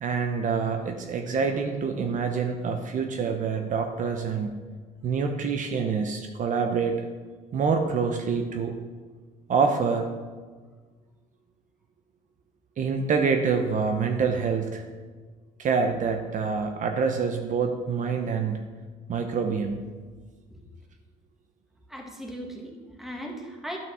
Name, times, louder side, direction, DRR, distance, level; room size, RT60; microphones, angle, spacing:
voice 1, 0.0-4.5 5.0-7.0 7.5-8.7 9.5-10.1 12.8-14.8 15.6-18.6 19.1-19.8, right 5 dB, 50° right, 5 dB, 0.9 m, -26 dB
voice 2, 21.9-23.8, equal, ahead, 1 dB, 1.8 m, -38 dB
11.0 x 6.0 x 6.2 m, 1.4 s
cardioid pair, 110°, 17 cm